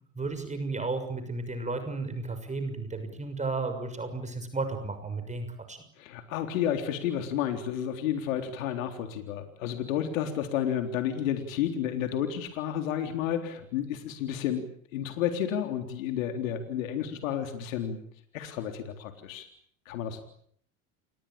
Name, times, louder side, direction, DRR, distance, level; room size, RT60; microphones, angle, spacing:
voice 1, 0.1-5.8, right 3 dB, 20° right, 8 dB, 6.5 m, -33 dB
voice 2, 6.0-18.0 18.3-19.5 19.9-20.2, left 9 dB, 85° left, 6 dB, 3.8 m, -31 dB
28.5 x 22.5 x 8.9 m, 0.64 s
supercardioid pair, 95°, 39 cm